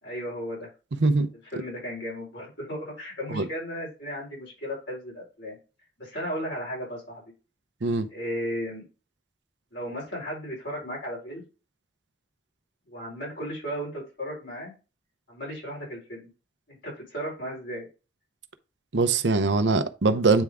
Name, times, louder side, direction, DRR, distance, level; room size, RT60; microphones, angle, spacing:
voice 1, 0.0-0.7 1.5-5.6 6.0-7.2 8.1-8.8 9.7-11.4 12.9-14.7 15.3-16.3 16.7-17.9, equal, 90° left, 4.2 m, -35 dB
voice 2, 18.9-20.4, right 3 dB, 85° right, 0.7 m, -22 dB
8.9 x 3.4 x 3.6 m
head